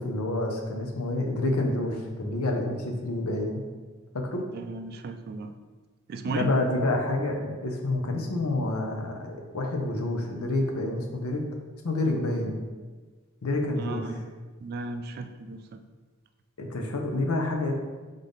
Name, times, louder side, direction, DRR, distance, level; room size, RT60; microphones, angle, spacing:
voice 1, 0.0-3.6 4.3-4.4 6.3-11.5 11.8-12.6 13.4-14.1 16.6-17.7, left 2 dB, 75° left, 2 dB, 0.7 m, -28 dB
voice 2, 4.5-5.5 6.1-6.5 13.8-14.2 14.6-15.6, right 3 dB, 45° right, 7 dB, 0.3 m, -35 dB
3.6 x 3.5 x 3.9 m, 1.3 s
head